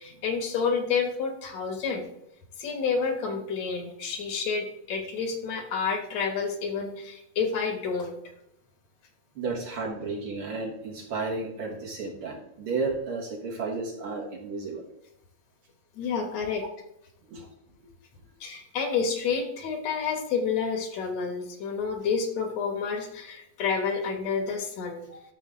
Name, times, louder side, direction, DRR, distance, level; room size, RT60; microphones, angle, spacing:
voice 1, 0.0-2.1 2.6-8.2 16.0-16.6 18.4-25.1, left 5 dB, 70° left, 4 dB, 2.4 m, -29 dB
voice 2, 9.4-14.8 17.3-17.5 25.1-25.2, right 3 dB, 55° right, -1 dB, 2.1 m, -33 dB
12.5 x 6.6 x 3.6 m, 0.82 s
omnidirectional pair, 3.3 m